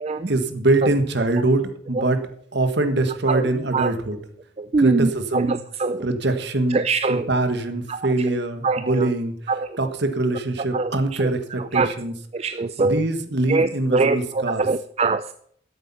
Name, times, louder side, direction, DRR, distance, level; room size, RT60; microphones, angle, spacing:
voice 1, 0.3-2.2 2.5-4.2 4.8-5.6 6.0-6.8 7.1-12.1 12.8-14.7, right 2 dB, 55° right, 1.6 m, -23 dB
voice 2, 4.6-6.0 6.7-7.3 7.9-8.0 8.6-9.1 9.5-9.7 10.7-10.9 11.2-11.3 11.7-11.9 12.3-13.0 13.5-15.2, right 3 dB, 30° right, 0.4 m, -23 dB
13.5 x 8.4 x 5.6 m
head